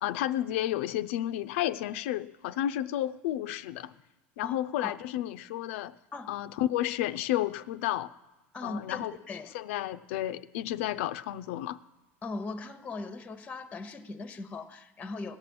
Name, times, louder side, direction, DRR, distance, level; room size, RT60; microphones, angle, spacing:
voice 1, 0.0-3.9 4.4-5.9 6.3-8.1 8.6-9.2 9.5-11.8, left 13 dB, 85° left, 0.4 m, -31 dB
voice 2, 4.4-4.9 6.1-6.3 8.5-9.5 12.2-15.4, left 3 dB, 20° left, 0.7 m, -39 dB
17.5 x 6.0 x 8.5 m
supercardioid pair, 130°, 7 cm